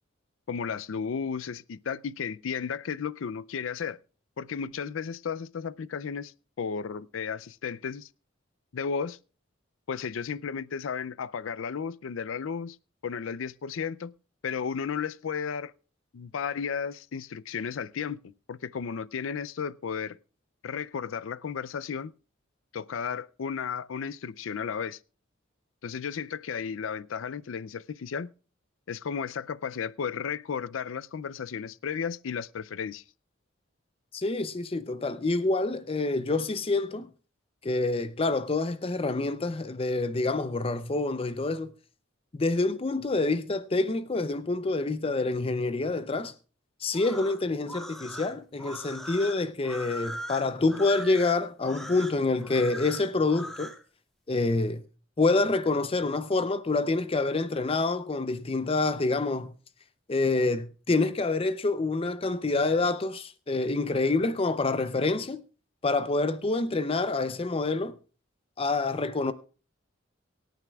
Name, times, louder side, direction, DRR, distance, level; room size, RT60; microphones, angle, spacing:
voice 1, 0.5-4.0 4.4-8.1 8.7-9.2 9.9-12.8 13.0-14.1 14.4-15.7 16.1-20.2 20.6-22.1 22.7-25.0 25.8-28.3 28.9-33.0, left 6 dB, 85° left, 0.4 m, -34 dB
voice 2, 34.1-37.1 37.6-41.7 42.3-46.3 46.8-53.7 54.3-54.8 55.2-59.5 60.1-65.4 65.8-68.0 68.6-69.3, left 3 dB, 30° left, 0.5 m, -27 dB
sound 1, 46.9-53.8, equal, ahead, 1.8 m, -40 dB
24.0 x 9.3 x 2.3 m
head